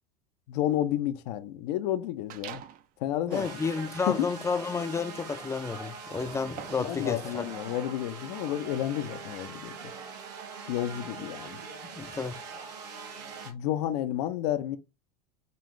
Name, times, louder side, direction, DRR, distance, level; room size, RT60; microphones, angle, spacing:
voice 1, 0.5-2.6 3.0-3.5 4.1-4.3 6.8-9.8 10.7-11.6 13.5-14.8, left 12 dB, 75° left, 0.6 m, -31 dB
sound 1, 2.3-2.9 3.4-7.0, right 10 dB, 45° right, 0.5 m, -47 dB
voice 2, 3.3-7.4 12.0-12.4, left 5 dB, 15° left, 0.4 m, -31 dB
sound 2, 3.3-13.5, right 5 dB, 85° right, 1.3 m, -42 dB
5.4 x 2.5 x 3.1 m
supercardioid pair, 110°, 21 cm